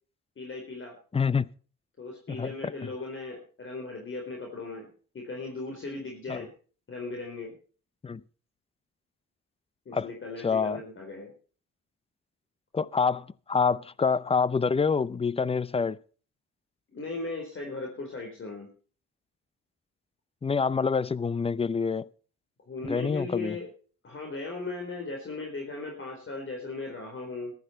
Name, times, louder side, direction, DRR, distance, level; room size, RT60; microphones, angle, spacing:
voice 1, 0.4-1.0 2.0-6.5 6.9-7.5 9.9-11.3 16.9-18.7 22.7-23.7 24.0-27.5, left 3 dB, 40° left, 4.2 m, -37 dB
voice 2, 1.1-1.5 2.4-2.5 6.3-6.4 8.0-8.2 9.9-10.1 10.4-10.8 12.7-16.0 20.4-22.0 22.9-23.5, left 5 dB, 20° left, 0.6 m, -26 dB
14.5 x 12.0 x 4.4 m
cardioid pair, 90°, 30 cm